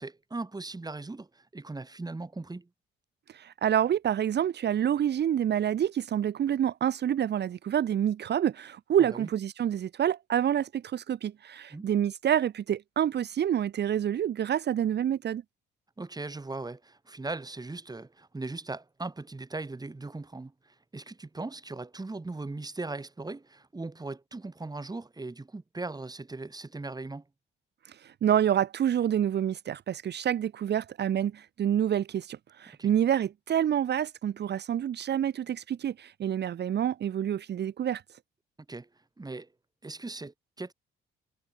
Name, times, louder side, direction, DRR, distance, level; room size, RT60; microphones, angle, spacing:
voice 1, 0.0-2.7 9.0-9.3 11.7-11.9 16.0-27.3 32.8-32.9 38.7-38.9 39.2-39.5 39.8-40.7, right 3 dB, 20° right, 7.2 m, -39 dB
voice 2, 3.3-15.4 27.8-38.2, right 10 dB, 60° right, 1.4 m, -28 dB
cardioid pair, 90°, 20 cm